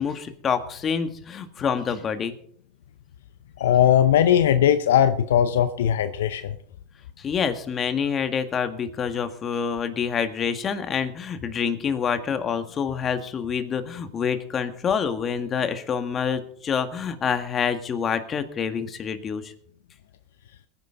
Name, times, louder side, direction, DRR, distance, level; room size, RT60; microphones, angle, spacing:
voice 1, 0.0-2.3 7.2-19.5, left 7 dB, 35° left, 9 dB, 1.8 m, -27 dB
voice 2, 3.6-6.6, left 10 dB, 80° left, 11 dB, 0.6 m, -19 dB
22.0 x 10.5 x 3.9 m, 0.62 s
hypercardioid pair, 95°, 0 cm